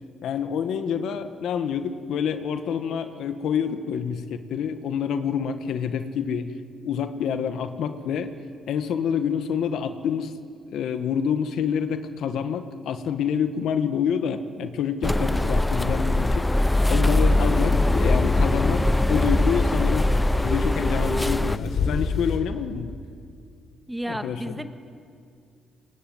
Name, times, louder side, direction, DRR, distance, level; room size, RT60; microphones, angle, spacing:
voice 1, 0.2-6.5 6.8-8.3 8.7-10.3 10.7-16.5 16.9-20.1 20.4-22.9 24.1-24.6, left 7 dB, 75° left, 9 dB, 1.5 m, -27 dB
sound 1, 15.0-21.6, left 1 dB, 10° left, 0.6 m, -21 dB
sound 2, 17.0-22.4, left 4 dB, 55° left, 4.9 m, -30 dB
voice 2, 23.9-24.7, right 1 dB, 5° right, 7 dB, 1.8 m, -32 dB
24.5 x 22.0 x 9.7 m, 2.3 s
cardioid pair, 90°, 0 cm